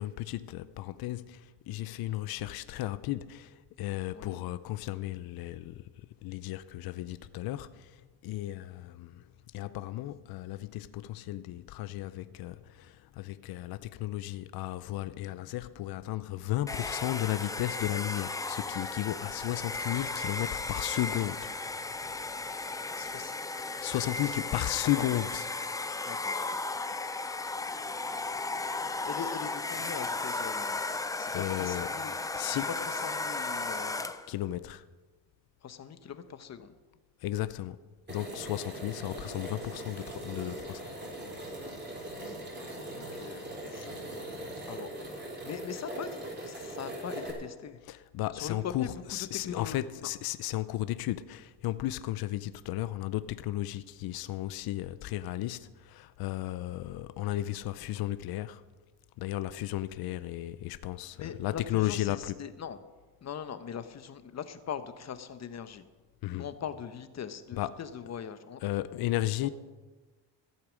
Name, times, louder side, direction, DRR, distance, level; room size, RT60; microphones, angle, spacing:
voice 1, 0.0-5.9 6.2-9.3 9.5-21.8 23.8-25.5 31.3-31.9 32.3-32.7 34.3-34.8 37.2-37.8 38.1-40.9 47.8-58.6 59.2-62.3 66.2-66.5 67.5-67.8 68.6-69.5, left 14 dB, 55° left, 0.6 m, -34 dB
voice 2, 4.1-4.4 23.0-23.3 25.0-25.1 26.1-26.4 29.0-30.8 31.2-32.1 32.5-32.6 32.9-34.1 35.6-36.7 42.9-44.4 44.7-44.9 45.4-47.8 48.4-48.9 49.4-49.8 61.2-62.8 63.2-65.8 66.3-68.6, left 8 dB, 40° left, 1.0 m, -41 dB
Domestic sounds home sounds, 16.7-34.3, left 3 dB, 10° left, 0.4 m, -35 dB
sound 1, 38.1-47.3, right 1 dB, 25° right, 3.8 m, -41 dB
15.0 x 8.5 x 6.3 m
cardioid pair, 120°, 43 cm